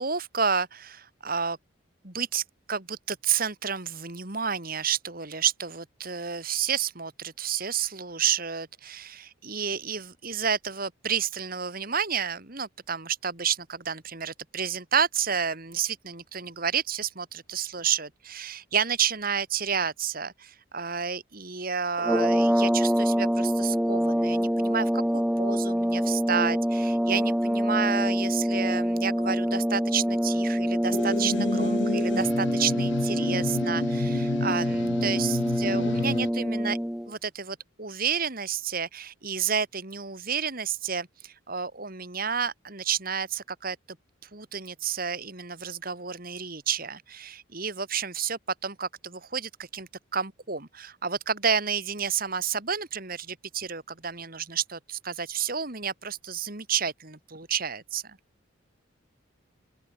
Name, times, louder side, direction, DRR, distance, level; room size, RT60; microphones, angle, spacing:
voice 1, 0.0-1.6 2.0-36.8 37.1-43.8 44.3-58.2, right 7 dB, 45° right, 3.0 m, -30 dB
sound 1, 22.0-37.1, equal, 5° right, 0.9 m, -26 dB
sound 2, 30.9-36.3, left 4 dB, 60° left, 0.5 m, -31 dB
open air
head